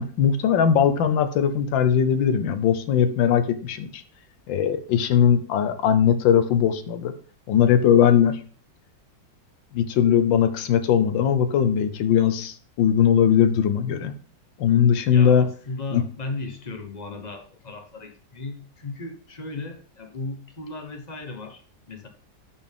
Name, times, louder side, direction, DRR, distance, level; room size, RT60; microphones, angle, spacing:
voice 1, 0.0-4.0 4.5-7.1 7.5-8.4 9.7-14.1 14.6-15.4 15.9-16.0, left 8 dB, 85° left, 9 dB, 1.5 m, -20 dB
voice 2, 15.1-22.1, left 2 dB, 30° left, 5 dB, 0.8 m, -36 dB
10.5 x 4.4 x 3.5 m, 0.43 s
omnidirectional pair, 2.0 m